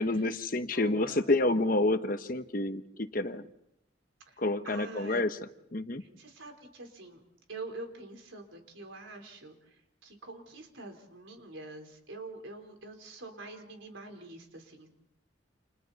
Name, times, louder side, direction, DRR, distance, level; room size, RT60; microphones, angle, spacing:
voice 1, 0.0-3.5 4.4-5.3 5.7-6.0, left 2 dB, 45° left, 9 dB, 1.1 m, -29 dB
voice 2, 0.7-1.2 4.3-5.2 6.0-7.2 7.5-14.9, right 2 dB, 85° right, 4 dB, 4.1 m, -45 dB
30.0 x 28.5 x 4.2 m, 0.82 s
head